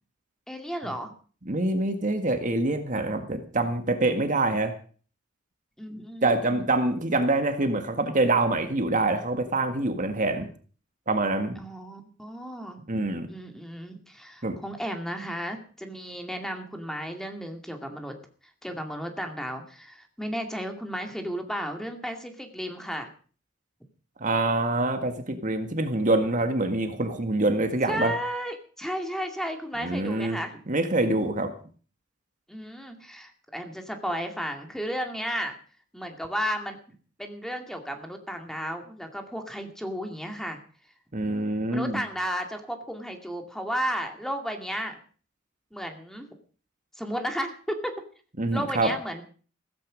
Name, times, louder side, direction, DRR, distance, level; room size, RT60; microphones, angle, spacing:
voice 1, 0.5-1.1 5.8-6.7 11.6-12.9 13.3-18.2 18.6-23.1 27.9-30.6 32.5-35.6 35.9-36.8 37.2-40.6 41.7-45.0 45.7-46.3 47.0-47.9 48.5-49.2, equal, ahead, 5 dB, 2.4 m, -33 dB
voice 2, 1.5-4.7 6.2-10.5 11.1-11.6 12.9-13.3 14.4-14.6 24.2-28.1 29.8-30.4 30.7-31.5 41.1-42.0 48.4-48.9, right 2 dB, 40° right, 7 dB, 1.8 m, -25 dB
16.0 x 15.0 x 5.1 m, 0.41 s
head